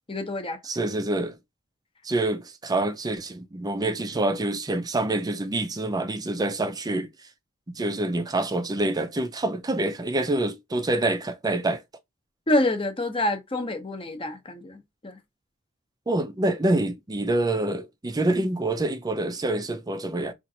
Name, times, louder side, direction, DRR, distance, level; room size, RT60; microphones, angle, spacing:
voice 1, 0.1-0.6 12.5-15.2 18.3-18.4, left 1 dB, 25° left, 0.8 m, -27 dB
voice 2, 0.6-1.3 2.0-7.1 7.8-11.8 16.1-20.3, right 2 dB, 15° right, 0.4 m, -26 dB
4.3 x 2.5 x 2.7 m
head